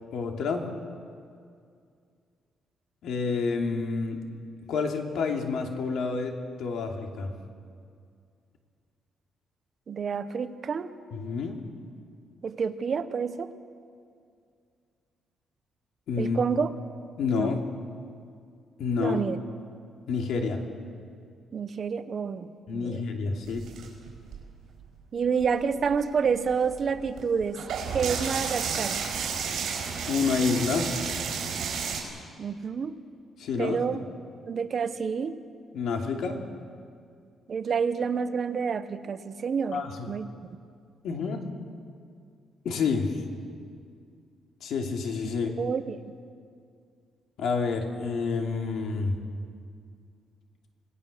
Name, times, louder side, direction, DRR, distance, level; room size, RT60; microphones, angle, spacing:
voice 1, 0.1-0.6 3.0-4.2 4.7-7.3 11.1-11.6 16.1-16.4 17.2-17.6 18.8-19.2 20.1-20.6 22.7-23.7 30.1-30.9 33.4-33.8 35.7-36.4 39.7-40.1 41.0-41.4 42.6-43.2 44.6-45.5 47.4-49.2, left 5 dB, 75° left, 2 dB, 2.6 m, -28 dB
voice 2, 9.9-10.9 12.4-13.5 16.2-16.7 17.4-17.5 19.0-19.4 21.5-23.0 25.1-27.6 27.9-29.0 32.4-33.0 33.6-34.1 34.5-35.4 37.5-40.3 45.6-46.0, right 6 dB, 40° right, 10 dB, 1.0 m, -28 dB
sound 1, 23.4-24.8 25.4-25.5 25.7-32.0, right 6 dB, 70° right, 4.9 m, -32 dB
26.5 x 18.5 x 6.7 m, 2.3 s
cardioid pair, 145°, 0 cm